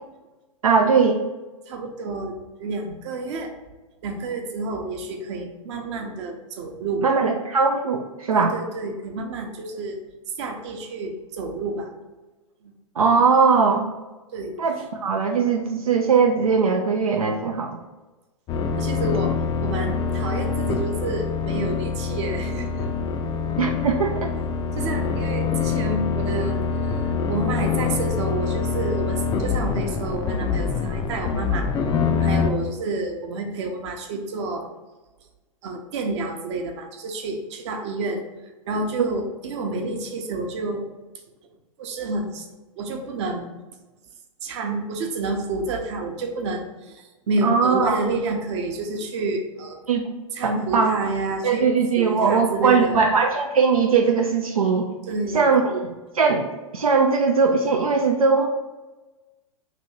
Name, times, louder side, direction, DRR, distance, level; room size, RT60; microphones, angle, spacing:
voice 1, 0.6-1.2 7.0-8.5 13.0-13.9 14.6-17.8 23.6-24.3 47.4-48.0 49.9-50.1 50.4-51.0 51.4-54.9 55.3-56.5 56.7-58.5, right 5 dB, 90° right, 2 dB, 0.4 m, -20 dB
voice 2, 1.7-3.5 4.0-7.0 8.4-10.0 10.4-11.9 12.6-12.7 14.3-14.6 18.8-19.3 19.6-22.7 24.8-26.6 26.8-27.0 27.3-31.7 32.2-34.7 35.6-38.2 38.7-40.8 41.8-42.4 42.8-43.5 44.4-49.8 50.3-51.7 52.0-53.0 55.1-55.5, right 3 dB, 55° right, 3 dB, 0.8 m, -29 dB
sound 1, 18.5-32.5, left 5 dB, 25° left, 0.4 m, -25 dB
3.0 x 2.7 x 4.4 m, 1.2 s
hypercardioid pair, 105°, 18 cm